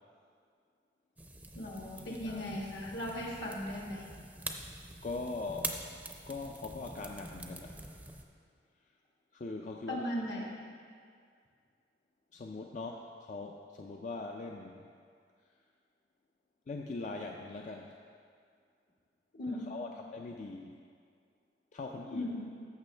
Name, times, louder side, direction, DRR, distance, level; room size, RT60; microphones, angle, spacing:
sound 1, 1.2-8.2, right 2 dB, 10° right, 0.6 m, -45 dB
voice 1, 1.5-4.1 9.9-10.4 19.3-19.7 22.1-22.5, left 1 dB, 70° left, -2 dB, 1.6 m, -37 dB
voice 2, 2.1-2.4 5.0-5.8 6.3-8.2 9.3-10.0 12.3-14.9 16.7-18.0 19.5-20.8 21.7-22.3, left 3 dB, 45° left, 1 dB, 0.4 m, -41 dB
14.0 x 6.1 x 3.3 m, 2.2 s
head